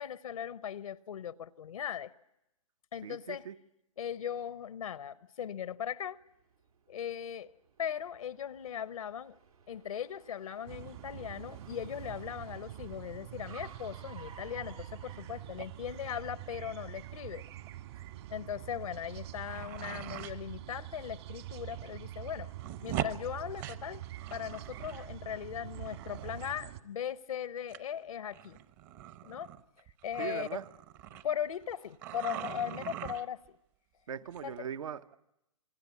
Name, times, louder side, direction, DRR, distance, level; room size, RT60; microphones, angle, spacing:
voice 1, 0.0-2.1 2.9-3.5 4.0-6.2 6.9-7.5 7.8-9.4 9.7-17.4 18.3-22.5 22.8-24.0 24.3-28.6 29.2-29.6 30.0-30.5 31.2-33.4 34.4-34.7, left 9 dB, 75° left, 0.9 m, -39 dB
voice 2, 3.0-3.6 30.2-30.6 34.1-35.2, right 8 dB, 70° right, 1.0 m, -40 dB
Car, 6.2-16.1, right 5 dB, 85° right, 2.7 m, -57 dB
sound 1, 10.7-26.8, right 13 dB, 50° right, 1.8 m, -45 dB
sound 2, 14.9-15.2 15.5-15.7 16.5-16.8 17.2-17.3 17.5-17.7 18.5-18.6 19.1-20.4 21.0-21.1 21.5-22.0 22.2-25.1 25.3-26.6 27.7-27.8 28.3-31.7 32.0-33.5 34.3-34.6, right 12 dB, 35° right, 1.0 m, -42 dB
27.0 x 22.5 x 8.3 m
hypercardioid pair, 140°, 18 cm